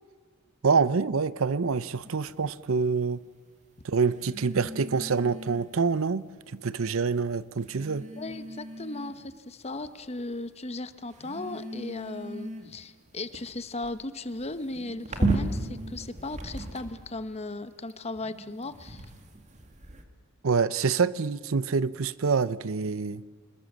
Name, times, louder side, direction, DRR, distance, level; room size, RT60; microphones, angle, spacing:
voice 1, 0.6-3.2 3.8-6.2 6.6-8.1 20.4-23.2, right 5 dB, 70° right, 0.6 m, -26 dB
sound 1, 2.0-2.3 4.1-5.9 6.8-6.9 7.6-9.3 9.8-10.3 11.1-17.1 17.9-20.0, right 2 dB, 35° right, 2.1 m, -36 dB
voice 2, 8.2-19.0, left 2 dB, 30° left, 1.0 m, -37 dB
26.5 x 21.0 x 7.3 m
head